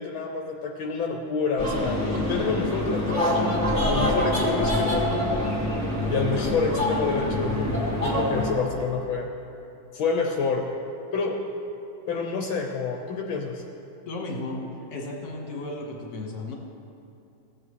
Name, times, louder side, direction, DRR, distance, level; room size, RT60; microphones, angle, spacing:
voice 1, 0.0-2.0 2.3-5.5 6.1-9.3 9.9-10.7 11.1-11.4 12.1-13.6, left 5 dB, 75° left, 2 dB, 1.5 m, -28 dB
sound 1, 1.6-8.5, left 1 dB, 10° right, 1.3 m, -25 dB
voice 2, 2.0-2.6 14.0-14.6 14.9-16.5, left 2 dB, 40° left, -1 dB, 1.6 m, -35 dB
16.5 x 7.5 x 3.2 m, 2.8 s
omnidirectional pair, 2.4 m